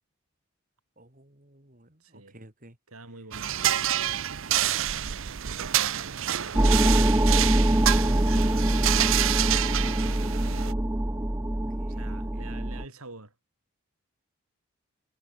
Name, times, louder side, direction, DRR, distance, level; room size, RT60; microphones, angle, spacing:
voice 1, 1.0-2.8 4.5-5.0 11.8-12.4, right 1 dB, 40° right, 3.3 m, -55 dB
voice 2, 2.0-2.4 2.9-3.7 11.9-13.3, right 2 dB, 85° right, 5.3 m, -47 dB
sound 1, 3.3-10.7, right 11 dB, 65° right, 0.7 m, -28 dB
sound 2, 6.6-12.8, right 1 dB, 10° right, 0.6 m, -24 dB
head